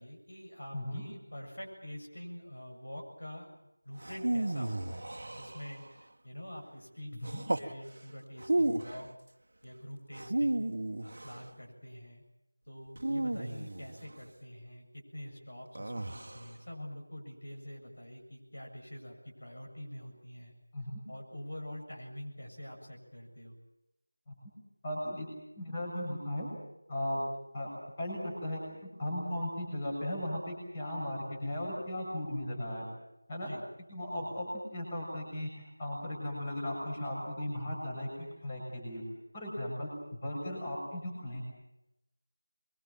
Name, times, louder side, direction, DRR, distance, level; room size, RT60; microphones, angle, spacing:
voice 1, 0.0-3.5 3.8-9.1 9.6-10.7 11.0-12.2 12.7-20.5 21.1-23.6 33.4-33.6 34.2-34.4, equal, 60° left, 0 dB, 7.6 m, -46 dB
sound 1, 4.0-6.0 7.2-7.7 8.4-9.1 10.1-11.5 13.0-14.2 15.8-16.5, right 1 dB, 50° right, 1.6 m, -33 dB
voice 2, 24.8-25.3 25.6-26.5 26.9-27.2 27.5-27.7 28.0-32.9 33.3-33.5 33.9-39.0 39.3-41.4, left 1 dB, 20° left, -3 dB, 6.9 m, -36 dB
25.5 x 23.5 x 7.3 m, 0.88 s
figure-of-eight pair, 170°, 0 cm